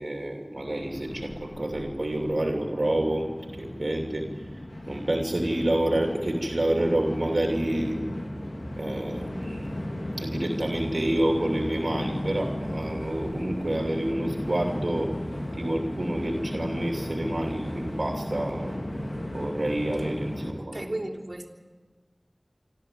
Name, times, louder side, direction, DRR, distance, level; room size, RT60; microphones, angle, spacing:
voice 1, 0.0-3.3 3.5-4.4 4.9-8.1 8.8-9.7 10.2-15.1 15.6-18.8 19.3-20.9, right 1 dB, 65° right, 1 dB, 2.8 m, -28 dB
Train, 0.6-20.5, left 1 dB, 75° left, 4.4 m, -35 dB
voice 2, 20.6-21.5, right 1 dB, 45° right, -2 dB, 3.6 m, -34 dB
26.5 x 13.5 x 9.1 m, 1.4 s
wide cardioid pair, 45°, 0 cm